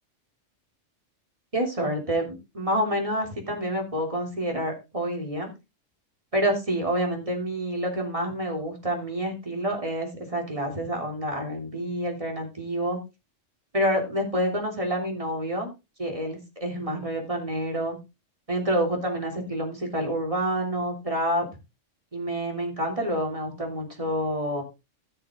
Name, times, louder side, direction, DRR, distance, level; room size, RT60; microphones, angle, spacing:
voice 1, 1.5-5.5 6.3-13.0 13.7-15.7 16.0-18.0 18.5-21.5 22.1-24.6, equal, 25° right, 2 dB, 3.2 m, -28 dB
15.0 x 6.6 x 3.8 m, 0.26 s
omnidirectional pair, 1.3 m